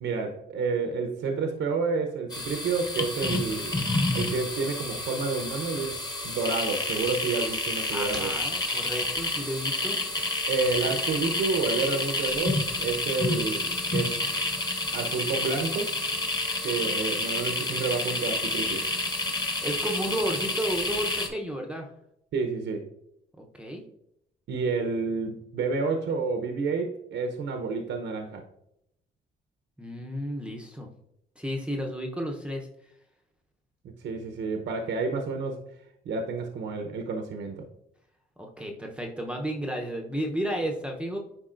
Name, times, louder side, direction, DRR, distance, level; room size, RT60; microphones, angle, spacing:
voice 1, 0.0-3.8 4.1-8.4 10.5-14.2 14.9-16.0 16.6-18.9 22.3-22.8 24.5-28.4 34.0-35.7 36.1-37.7, right 4 dB, 70° right, 4 dB, 0.8 m, -29 dB
sound 1, 2.3-21.3, left 2 dB, 20° left, 1.2 m, -29 dB
voice 2, 7.9-10.0 19.6-21.9 23.5-23.8 29.8-30.9 31.4-32.7 38.4-41.2, equal, 5° right, 2 dB, 0.7 m, -32 dB
9.9 x 4.1 x 2.5 m, 0.79 s
cardioid pair, 90°, 20 cm